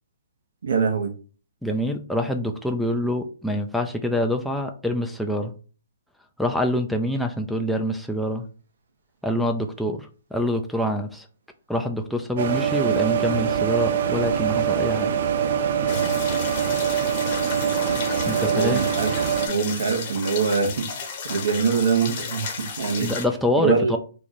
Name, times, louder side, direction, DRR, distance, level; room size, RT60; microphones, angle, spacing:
voice 1, 0.6-1.1 15.8-16.3 18.4-22.4 22.8-23.1 23.6-24.0, right 5 dB, 70° right, 4 dB, 1.0 m, -24 dB
voice 2, 1.6-5.5 6.4-8.5 9.2-11.3 11.7-15.1 18.2-18.8 23.0-24.0, left 1 dB, ahead, 5 dB, 0.3 m, -25 dB
sound 1, 12.4-19.5, right 8 dB, 55° right, 0.5 m, -23 dB
sound 2, 15.9-23.3, left 6 dB, 40° left, 0.8 m, -34 dB
3.0 x 2.5 x 4.0 m, 0.38 s
hypercardioid pair, 150°, 0 cm